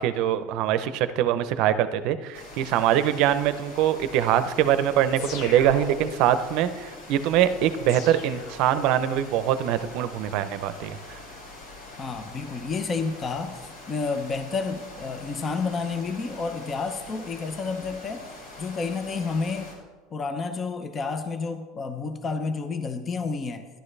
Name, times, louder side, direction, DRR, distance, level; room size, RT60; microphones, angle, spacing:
voice 1, 0.0-11.2, right 11 dB, 55° right, 12 dB, 0.6 m, -23 dB
sound 1, 2.3-19.7, left 2 dB, 85° left, 3.8 m, -44 dB
sound 2, 5.2-6.4 7.9-9.2, left 4 dB, 55° left, 1.3 m, -38 dB
voice 2, 12.0-13.6 13.9-18.3 18.6-19.7 20.1-23.7, left 4 dB, 25° left, 8 dB, 0.6 m, -30 dB
12.0 x 11.5 x 3.3 m, 1.3 s
cardioid pair, 155°, 0 cm